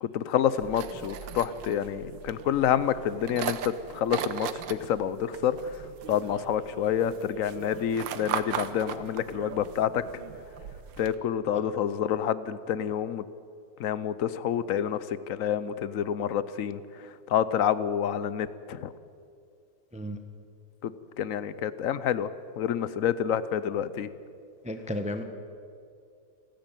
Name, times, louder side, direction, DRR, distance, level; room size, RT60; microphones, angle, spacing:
voice 1, 0.0-5.6 6.1-10.0 11.0-13.2 13.8-16.8 17.3-18.9 20.8-20.9 21.2-22.3 22.6-24.1, left 9 dB, 60° left, 15 dB, 0.9 m, -28 dB
sound 1, 0.6-11.2, right 9 dB, 85° right, 1.6 m, -38 dB
voice 2, 24.6-25.2, left 1 dB, 5° right, 7 dB, 0.9 m, -33 dB
29.0 x 10.5 x 9.1 m, 2.4 s
omnidirectional pair, 2.0 m